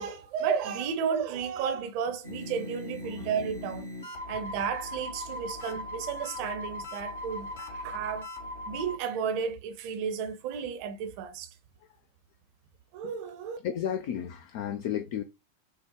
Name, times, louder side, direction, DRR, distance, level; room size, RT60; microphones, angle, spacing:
voice 1, 0.0-3.9 4.3-8.3 8.6-11.5 12.9-13.6, right 7 dB, 45° right, 0.8 m, -33 dB
sound 1, 2.2-9.0, left 1 dB, 65° left, 1.4 m, -39 dB
voice 2, 13.6-15.2, left 9 dB, 50° left, 0.5 m, -33 dB
6.5 x 2.4 x 3.0 m
figure-of-eight pair, 90°, 0 cm